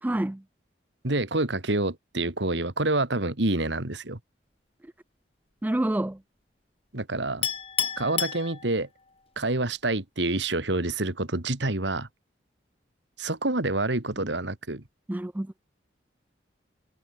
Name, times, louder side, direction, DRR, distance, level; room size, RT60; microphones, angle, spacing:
voice 1, 0.0-0.4 5.6-6.2 15.1-15.6, right 1 dB, 10° right, 0.3 m, -27 dB
voice 2, 1.0-4.2 6.9-7.5 8.0-8.9 9.4-12.1 13.2-14.8, right 2 dB, 75° right, 2.4 m, -27 dB
Chink clink, 7.4-9.1, left 9 dB, 30° left, 1.7 m, -30 dB
head